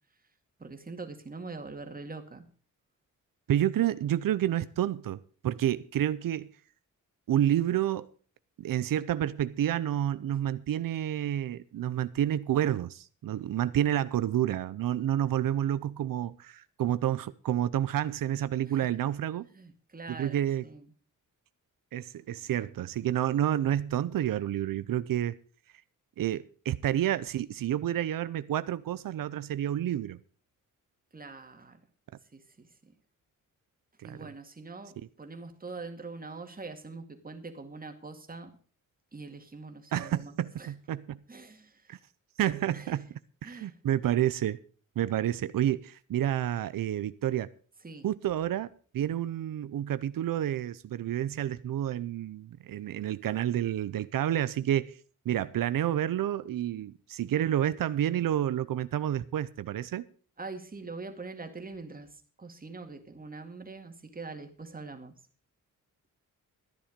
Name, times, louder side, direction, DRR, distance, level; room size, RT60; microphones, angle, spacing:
voice 1, 0.6-2.5 18.7-18.8 19.5-20.9 31.1-31.8 32.3-32.9 34.0-38.5 39.1-40.7 41.3-42.0 42.7-42.9 43.4-43.8 47.8-48.1 60.4-65.1, right 3 dB, 25° right, 2.2 m, -43 dB
voice 2, 3.5-6.5 7.3-8.1 8.6-19.5 20.2-20.7 21.9-25.4 26.2-30.2 34.0-34.3 39.9-41.2 41.9-42.0 42.4-43.1 43.4-44.6 45.0-47.5 48.0-54.9 55.3-60.0, right 11 dB, 85° right, 0.7 m, -29 dB
14.0 x 10.0 x 5.2 m
wide cardioid pair, 110°, 33 cm